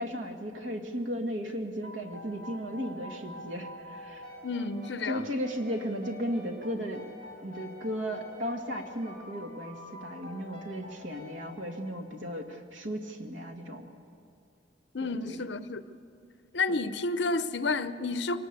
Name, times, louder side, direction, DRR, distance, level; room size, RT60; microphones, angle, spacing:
voice 1, 0.0-4.3 5.1-7.0 7.4-13.9 15.0-15.4, equal, 80° right, 2.0 m, -35 dB
sound 1, 1.8-12.2, left 2 dB, 50° right, 3.4 m, -47 dB
voice 2, 4.4-5.3 14.9-15.8 16.5-18.4, left 3 dB, 60° left, 0.7 m, -30 dB
23.0 x 19.0 x 6.8 m
head